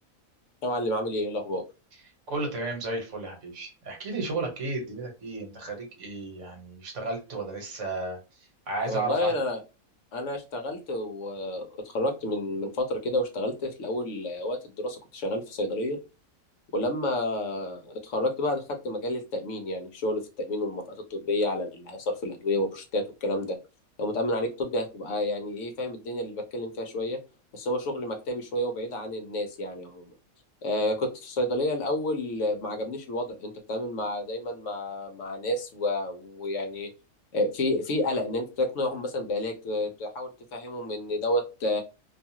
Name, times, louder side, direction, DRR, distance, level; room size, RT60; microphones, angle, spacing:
voice 1, 0.6-1.6 8.8-9.6 10.1-16.0 16.7-23.6 24.0-27.2 27.5-30.1 30.6-36.9 37.3-41.8, left 1 dB, 65° left, 4 dB, 0.9 m, -30 dB
voice 2, 2.3-8.2 8.7-9.3, right 3 dB, 60° right, 2 dB, 1.3 m, -33 dB
2.6 x 2.3 x 2.7 m, 0.30 s
omnidirectional pair, 1.5 m